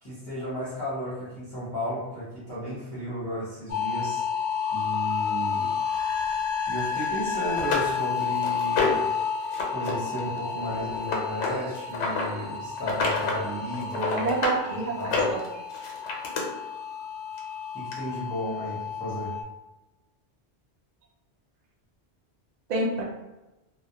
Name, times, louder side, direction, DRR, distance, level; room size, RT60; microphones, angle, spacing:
voice 1, 0.0-4.3 4.7-5.7 6.7-9.1 9.7-14.3 15.0-15.2 17.7-19.3, equal, 25° left, -12 dB, 0.7 m, -34 dB
sound 1, 3.7-19.4, left 6 dB, 55° left, 0.5 m, -31 dB
sound 2, 7.0-7.1 7.6-9.1 9.5-9.9 10.2-12.3 12.8-13.4 13.7-14.6 15.0-16.4 17.4-17.5 17.9-18.0, left 3 dB, 85° left, 0.9 m, -28 dB
voice 2, 14.1-15.6 22.7-23.0, right 3 dB, 60° right, -2 dB, 0.4 m, -28 dB
2.2 x 2.0 x 2.8 m, 1.0 s
omnidirectional pair, 1.2 m